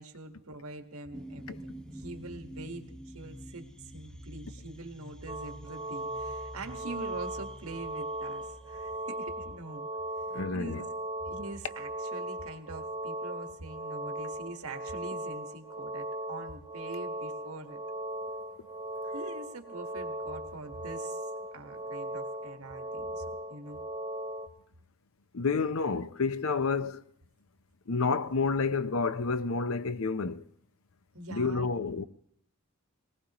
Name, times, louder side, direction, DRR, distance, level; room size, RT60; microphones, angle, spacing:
voice 1, 0.0-9.9 10.5-10.8 11.2-17.8 19.1-21.3 21.5-23.2 23.5-23.8 31.1-32.0, right 2 dB, 80° right, 1.5 m, -44 dB
sound 1, 1.1-9.7, right 1 dB, 5° left, 0.6 m, -48 dB
sound 2, 5.3-24.5, right 1 dB, 25° right, 1.1 m, -38 dB
voice 2, 10.3-10.8 25.3-27.0 27.9-30.4 31.3-32.0, left 4 dB, 65° left, 0.7 m, -29 dB
20.0 x 19.0 x 3.0 m
head